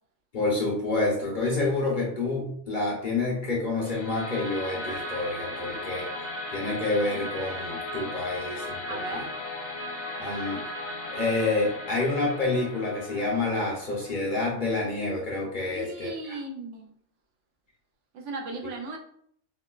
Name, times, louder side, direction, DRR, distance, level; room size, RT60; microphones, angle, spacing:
voice 1, 0.3-6.1 6.5-9.0 10.2-10.6 11.1-16.1, left 2 dB, 50° left, -3 dB, 0.7 m, -28 dB
sound 1, 3.8-14.8, left 1 dB, 70° left, 1.0 m, -36 dB
voice 2, 8.9-9.4 15.7-16.9 18.1-19.0, right 3 dB, 75° right, 2 dB, 0.9 m, -36 dB
3.7 x 2.2 x 2.2 m, 0.65 s
omnidirectional pair, 1.3 m